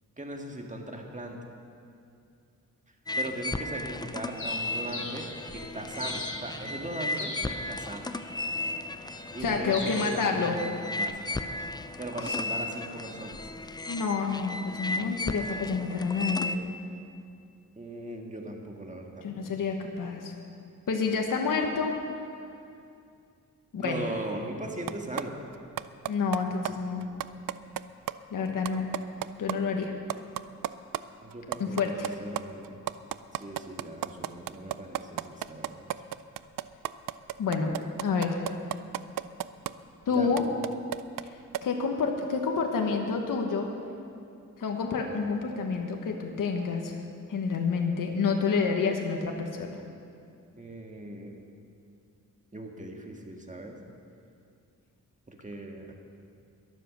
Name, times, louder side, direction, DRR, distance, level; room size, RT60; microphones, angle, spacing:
voice 1, 0.2-1.4 3.2-8.1 9.3-11.5 12.0-13.5 17.8-19.3 23.8-25.4 31.2-32.8 33.3-36.0 40.1-40.4 50.6-51.4 52.5-53.8 55.3-55.9, right 1 dB, 25° right, 1 dB, 1.8 m, -39 dB
sound 1, 3.1-16.6, left 2 dB, 15° left, 0.4 m, -35 dB
Bird, 4.4-11.0, left 2 dB, 40° left, 2.9 m, -42 dB
voice 2, 9.4-10.6 12.2-12.4 13.9-16.6 19.2-20.3 20.9-22.0 23.7-24.0 26.1-27.1 28.3-28.9 29.4-29.9 31.6-32.1 37.4-38.4 40.1-40.5 41.2-43.7 44.6-47.0 47.3-49.8, left 5 dB, 75° left, 2 dB, 1.3 m, -29 dB
sound 2, 24.9-25.2 25.5-26.4 26.7-26.8 27.0-27.8 28.1-28.2 28.5-29.5 29.8-29.9 30.1-31.0 31.3-39.7 40.1-41.3 41.5-41.6, right 12 dB, 85° right, 0.5 m, -32 dB
22.0 x 7.5 x 6.4 m, 2.5 s
wide cardioid pair, 95°, 32 cm